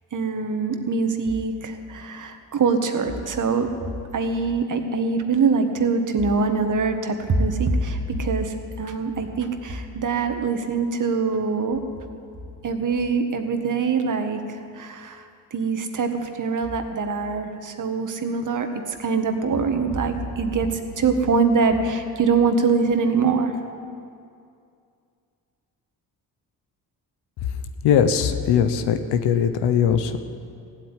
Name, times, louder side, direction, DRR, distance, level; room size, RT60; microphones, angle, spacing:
voice 1, 0.1-3.7 4.1-11.8 12.6-15.2 15.5-18.7 19.0-23.5, right 4 dB, 50° right, 6 dB, 1.7 m, -23 dB
voice 2, 27.8-30.2, left 8 dB, 85° left, 9 dB, 1.0 m, -20 dB
15.5 x 8.5 x 9.8 m, 2.4 s
cardioid pair, 75°, 39 cm